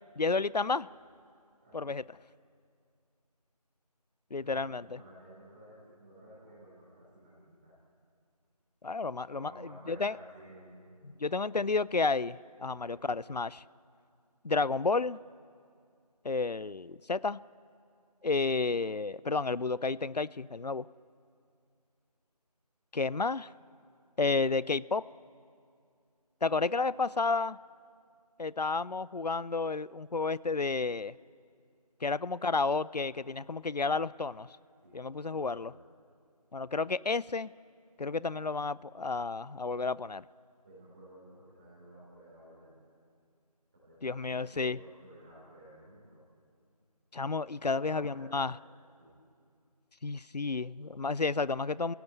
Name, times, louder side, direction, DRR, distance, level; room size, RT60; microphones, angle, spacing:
voice 1, 0.2-0.9 1.7-2.0 4.3-5.0 8.8-9.5 9.9-10.1 11.2-13.6 14.4-15.2 16.2-17.4 18.2-20.9 22.9-23.5 24.2-25.0 26.4-27.6 28.4-31.1 32.0-34.5 34.9-35.7 36.5-37.5 38.0-40.2 44.0-44.8 47.1-48.5 50.0-51.9, left 4 dB, 85° left, 21 dB, 0.5 m, -31 dB
voice 2, 4.3-7.7 9.3-11.0 12.7-13.0 34.8-35.8 40.6-42.8 43.7-46.2 47.6-48.4 49.0-49.2, right 1 dB, 15° right, -8 dB, 3.8 m, -54 dB
28.5 x 17.0 x 8.2 m, 2.3 s
figure-of-eight pair, 170°, 20 cm